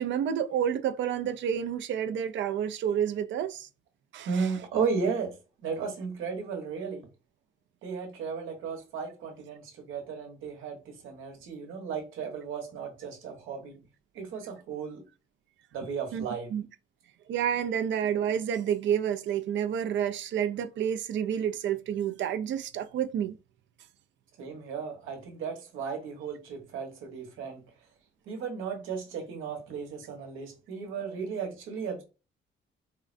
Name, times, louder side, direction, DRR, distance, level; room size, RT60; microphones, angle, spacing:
voice 1, 0.0-3.7 4.1-4.5 16.1-16.2 16.5-16.7 17.3-23.3, right 9 dB, 70° right, 0.5 m, -29 dB
voice 2, 4.3-7.1 7.8-13.8 14.1-15.0 15.7-16.5 24.4-27.6 28.3-32.0, right 5 dB, 85° right, 1.1 m, -35 dB
3.8 x 2.1 x 2.4 m
cardioid pair, 90°, 20 cm